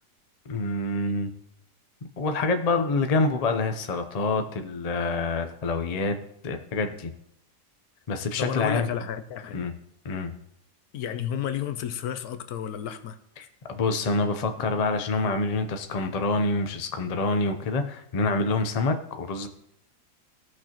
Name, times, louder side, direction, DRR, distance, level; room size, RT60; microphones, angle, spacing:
voice 1, 0.5-1.3 2.2-6.1 6.4-7.1 8.1-8.9 9.5-9.7 10.0-10.3 13.4-19.5, left 3 dB, 40° left, 6 dB, 0.5 m, -26 dB
voice 2, 8.4-9.7 10.9-13.2, left 9 dB, 70° left, 10 dB, 1.1 m, -31 dB
17.5 x 6.3 x 2.9 m, 0.75 s
omnidirectional pair, 1.7 m